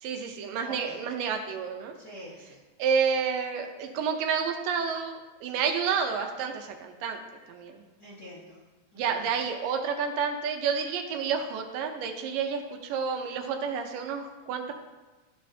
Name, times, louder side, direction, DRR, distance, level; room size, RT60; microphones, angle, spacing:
voice 1, 0.0-1.9 2.8-7.2 7.5-7.8 9.0-14.7, right 6 dB, 80° right, 4 dB, 2.3 m, -30 dB
voice 2, 0.6-1.0 2.0-2.6 8.0-8.6 8.9-9.3, equal, 50° left, -8 dB, 1.2 m, -45 dB
13.5 x 5.3 x 2.7 m, 1.2 s
omnidirectional pair, 4.0 m